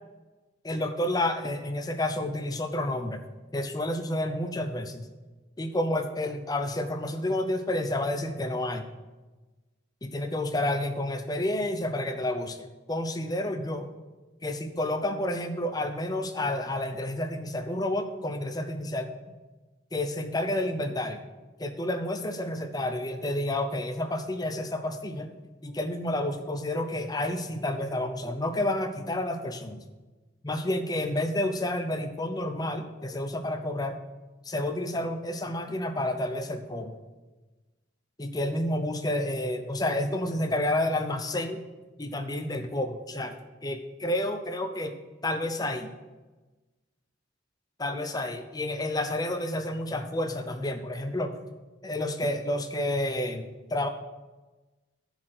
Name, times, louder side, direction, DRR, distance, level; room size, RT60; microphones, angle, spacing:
voice 1, 0.6-3.2 3.5-5.1 5.6-8.9 10.0-13.9 14.4-19.1 19.9-21.3 21.6-25.3 25.6-29.9 30.4-34.0 34.4-37.0 38.2-41.6 42.0-43.3 43.6-44.9 45.2-45.9 47.8-51.4 51.8-53.9, left 1 dB, 20° left, 7 dB, 0.7 m, -30 dB
10.5 x 4.4 x 7.7 m, 1.2 s
head